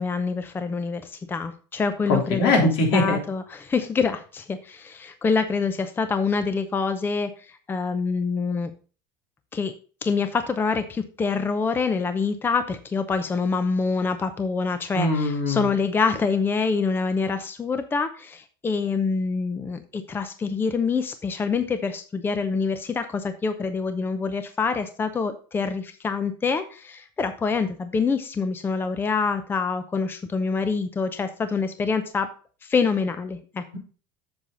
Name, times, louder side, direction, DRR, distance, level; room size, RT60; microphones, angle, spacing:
voice 1, 0.0-2.5 2.9-8.7 9.5-9.7 10.0-32.3 32.6-33.6, left 5 dB, 15° left, 10 dB, 0.7 m, -26 dB
voice 2, 2.1-3.2 14.9-15.7 33.7-33.8, left 2 dB, 75° left, 1 dB, 3.4 m, -21 dB
8.1 x 6.7 x 3.9 m, 0.37 s
supercardioid pair, 130°, 12 cm